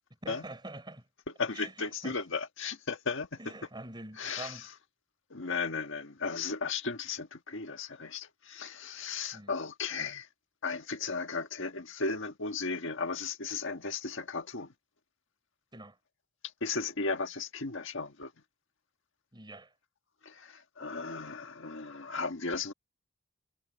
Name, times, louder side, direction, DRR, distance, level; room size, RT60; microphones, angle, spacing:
voice 1, 0.2-1.0 1.5-2.2 3.4-4.7 9.3-9.5 15.7-16.0 19.3-19.7, right 2 dB, 20° right, 4.8 m, -45 dB
voice 2, 1.4-3.4 4.2-4.6 5.3-10.3 10.6-14.7 16.6-18.3 20.2-22.7, left 4 dB, 65° left, 1.6 m, -35 dB
head